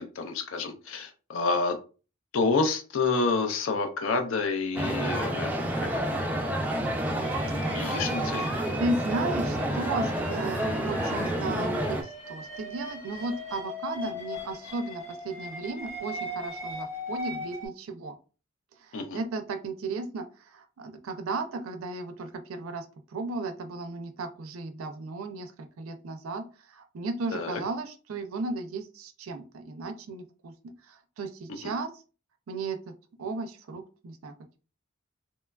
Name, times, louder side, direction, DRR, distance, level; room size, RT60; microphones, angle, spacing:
voice 1, 0.0-1.8 2.3-5.5 5.8-6.3 7.7-8.5 18.9-19.2 27.3-27.6 31.6-31.7, left 3 dB, 65° left, 6 dB, 0.4 m, -28 dB
sound 1, 4.7-12.0, right 1 dB, 10° right, 0.4 m, -29 dB
sound 2, 7.2-17.7, left 1 dB, 35° left, 0.9 m, -39 dB
voice 2, 7.7-8.1 8.8-18.1 18.9-20.3 20.5-22.9 23.1-30.5 31.2-31.9 32.5-32.9 33.2-34.6, right 3 dB, 85° right, 6 dB, 0.4 m, -35 dB
3.0 x 2.2 x 2.2 m, 0.35 s
head